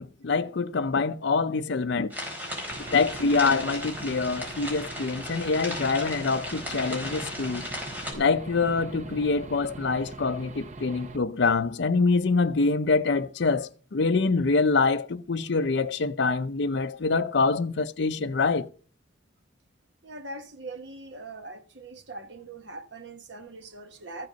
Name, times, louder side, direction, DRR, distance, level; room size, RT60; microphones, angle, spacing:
voice 1, 0.0-2.1 2.9-7.6 8.1-18.6, left 4 dB, 65° left, 0.5 m, -25 dB
sound 1, 2.1-8.1, left 1 dB, 10° right, 4.2 m, -36 dB
Aircraft / Engine, 2.7-11.2, right 2 dB, 40° right, 0.8 m, -42 dB
voice 2, 20.0-24.3, right 2 dB, 65° right, 1.3 m, -41 dB
14.0 x 7.8 x 5.2 m
head